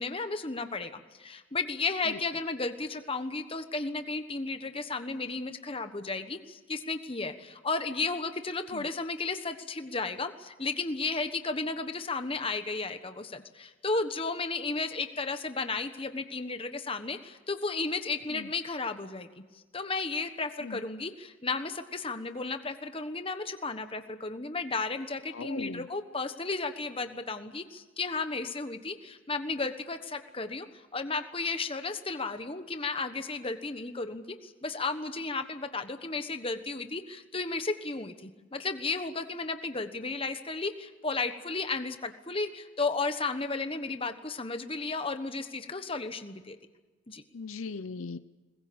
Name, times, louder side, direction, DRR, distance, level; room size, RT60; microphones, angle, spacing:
voice 1, 0.0-19.3 19.7-46.6 47.1-47.2, left 3 dB, 25° left, 8 dB, 1.3 m, -34 dB
voice 2, 25.3-25.9 47.3-48.2, left 4 dB, 75° left, 13 dB, 0.6 m, -39 dB
22.0 x 20.5 x 8.7 m, 1.2 s
head